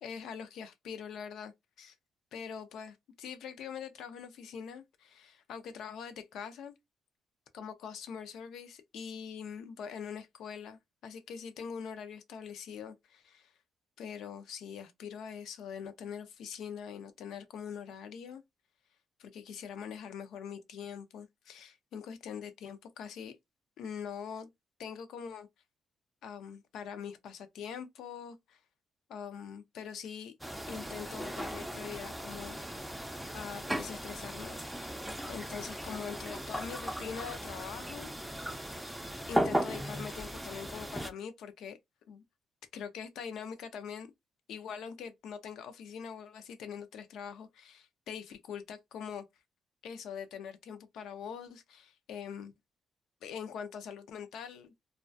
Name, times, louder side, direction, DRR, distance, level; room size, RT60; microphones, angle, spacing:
voice 1, 0.0-1.9 2.3-6.8 7.5-13.5 14.0-18.4 19.2-23.3 23.8-24.5 24.8-25.5 26.2-28.6 29.1-30.3 30.7-32.6 33.3-38.5 39.3-41.8 42.1-42.2 42.7-44.1 44.5-49.3 49.8-52.5 53.2-54.7, left 7 dB, 80° left, 0.4 m, -43 dB
sound 1, 30.4-41.1, equal, ahead, 0.4 m, -37 dB
2.2 x 2.2 x 2.5 m
cardioid pair, 90°, 0 cm